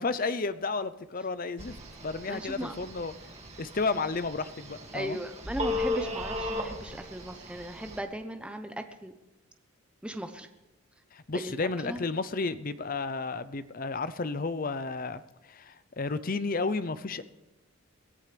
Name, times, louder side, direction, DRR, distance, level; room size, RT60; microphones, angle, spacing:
voice 1, 0.0-3.1 3.6-5.2 11.1-15.2 15.5-17.2, left 3 dB, 40° left, 13 dB, 0.6 m, -32 dB
Telephone, 1.6-8.0, left 2 dB, 30° right, 2.2 m, -36 dB
voice 2, 2.3-2.7 4.9-9.1 10.0-10.5 11.3-12.0, right 1 dB, 5° right, 6 dB, 0.7 m, -37 dB
22.5 x 14.5 x 3.4 m, 1.1 s
head